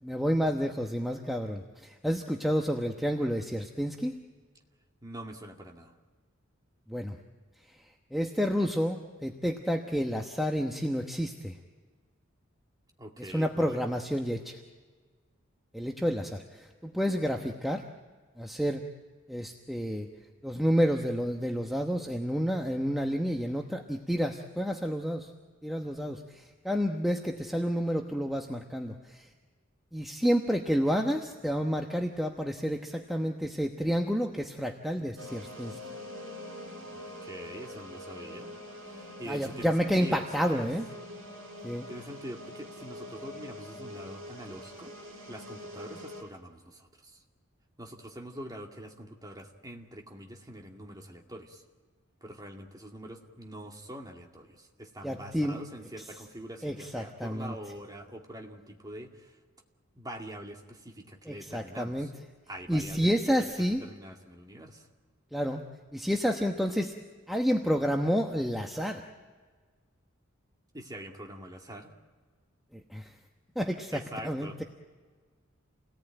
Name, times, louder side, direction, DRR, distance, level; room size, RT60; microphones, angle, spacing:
voice 1, 0.0-4.1 6.9-7.2 8.1-11.5 13.3-14.6 15.7-17.8 18.4-18.8 19.3-20.1 20.4-25.3 25.6-29.3 29.9-35.8 39.3-40.9 41.6-41.9 55.0-55.6 56.6-57.5 61.3-62.1 62.7-63.8 65.3-65.6 65.9-66.9 67.3-69.0 72.7-73.1 73.5-74.6, equal, ahead, 2 dB, 1.1 m, -30 dB
voice 2, 5.0-6.0 13.0-14.0 36.9-40.7 41.9-44.9 45.3-47.2 47.8-51.6 52.2-59.4 59.9-62.1 62.5-63.1 63.4-64.9 70.7-71.9 73.9-74.6, right 1 dB, 20° right, 2 dB, 2.2 m, -44 dB
sound 1, 35.2-46.2, left 1 dB, 70° right, 5.4 m, -44 dB
28.5 x 18.5 x 9.1 m, 1.5 s
head